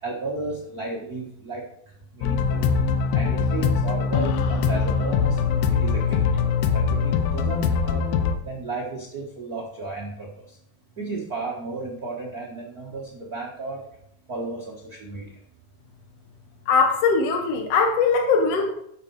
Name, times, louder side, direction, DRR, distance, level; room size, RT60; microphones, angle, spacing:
voice 1, 0.0-1.6 2.1-2.6 3.1-5.4 5.8-6.4 6.7-8.0 8.4-10.6 11.0-13.8 14.3-15.2, right 3 dB, 85° right, -2 dB, 0.8 m, -33 dB
sound 1, 2.2-8.4, left 6 dB, 75° left, 2.2 m, -22 dB
voice 2, 16.7-18.7, left 4 dB, 55° left, 3 dB, 1.8 m, -20 dB
11.0 x 7.1 x 4.9 m, 0.71 s
omnidirectional pair, 4.5 m